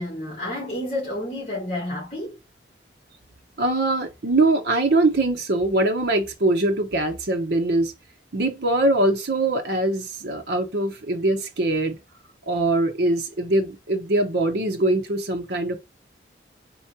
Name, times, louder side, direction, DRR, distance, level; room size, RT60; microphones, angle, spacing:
voice 1, 0.0-2.4, left 1 dB, 35° left, 1.5 m, -30 dB
voice 2, 3.6-7.9 8.3-12.0 12.5-15.8, right 2 dB, 70° right, 0.9 m, -22 dB
3.7 x 3.1 x 4.1 m
head